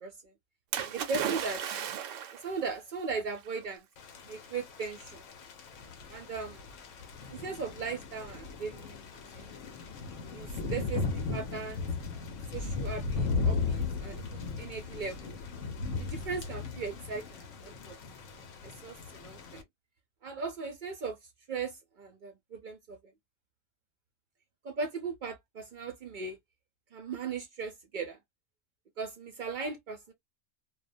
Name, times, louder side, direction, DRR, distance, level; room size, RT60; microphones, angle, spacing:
Splash splatter, 0.7-2.5 3.5-3.6, right 9 dB, 80° right, 0.9 m, -34 dB
voice 1, 0.8-1.6 2.4-3.8 4.3-5.2 6.1-6.7 7.3-9.0 9.3-9.5 10.3-11.8 12.5-15.3 16.0-18.0 18.6-19.6 20.2-21.2 21.5-23.0 24.6-26.4 26.9-28.2 29.0-30.1, right 4 dB, 60° right, 0.5 m, -38 dB
Thunder / Rain, 4.0-19.6, left 4 dB, 85° left, 1.0 m, -37 dB
2.4 x 2.1 x 2.4 m
omnidirectional pair, 1.3 m